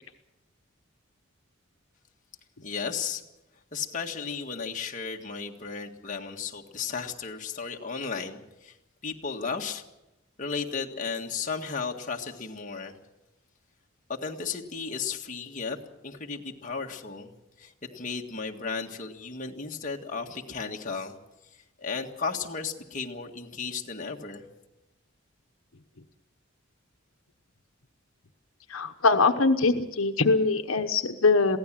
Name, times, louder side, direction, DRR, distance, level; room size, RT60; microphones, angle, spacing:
voice 1, 2.6-3.2 3.7-8.8 9.0-9.8 10.4-13.0 14.1-21.1 21.8-24.5, left 5 dB, 40° left, 1 dB, 1.8 m, -34 dB
voice 2, 28.7-31.6, left 3 dB, 85° left, 7 dB, 1.1 m, -22 dB
22.5 x 16.0 x 7.6 m, 0.96 s
head